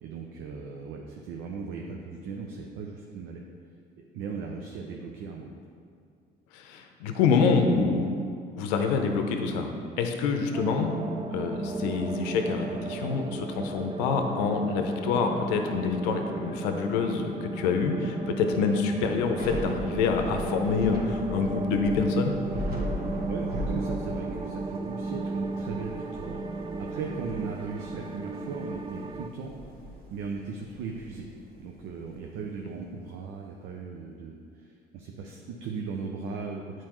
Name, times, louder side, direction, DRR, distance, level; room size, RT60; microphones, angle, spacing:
voice 1, 0.0-3.4 4.1-5.6 23.3-26.4 26.8-29.5 30.1-31.3 31.6-36.8, right 5 dB, 70° right, 1 dB, 0.6 m, -37 dB
voice 2, 6.5-8.1 8.5-11.0 11.3-22.3, left 5 dB, 85° left, 4 dB, 0.6 m, -26 dB
Dark Planet, 10.5-29.3, right 3 dB, 25° right, 0.3 m, -35 dB
Thunder / Rain, 19.2-32.3, equal, 45° right, 1.4 m, -38 dB
8.7 x 4.5 x 3.0 m, 2.3 s
supercardioid pair, 65°, 21 cm